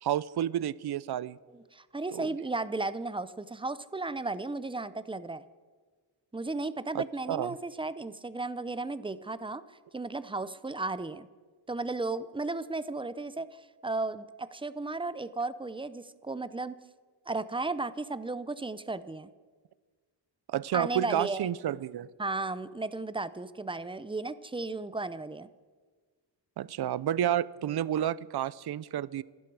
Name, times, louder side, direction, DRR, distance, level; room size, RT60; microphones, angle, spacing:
voice 1, 0.0-1.4 2.1-2.3 6.9-7.5 20.5-22.1 26.6-29.2, right 11 dB, 65° right, 20 dB, 0.6 m, -30 dB
voice 2, 1.5-5.5 6.3-11.3 11.7-16.8 17.3-19.3 20.7-21.5 22.2-25.5, right 3 dB, 10° right, 15 dB, 0.5 m, -35 dB
27.5 x 11.0 x 4.7 m, 1.5 s
wide cardioid pair, 140°, 43 cm